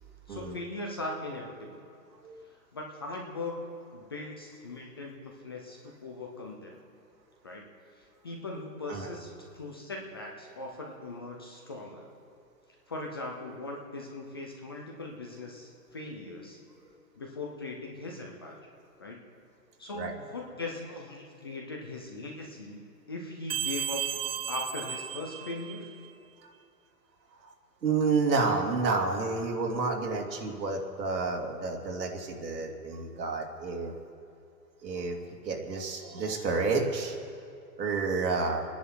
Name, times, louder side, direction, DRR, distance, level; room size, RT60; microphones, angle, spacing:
voice 1, 0.3-1.9 2.7-6.8 7.4-7.7 8.0-12.1 12.9-16.6 17.2-18.7 19.0-19.2 19.8-24.1 24.5-25.9, left 2 dB, 15° left, 0 dB, 0.5 m, -40 dB
sound 1, 23.5-26.1, right 9 dB, 35° right, 0.6 m, -34 dB
voice 2, 27.8-33.9 34.8-35.2 35.4-37.2 37.8-38.7, right 4 dB, 90° right, 0 dB, 3.0 m, -30 dB
28.0 x 10.0 x 4.6 m, 2.5 s
hypercardioid pair, 160°, 49 cm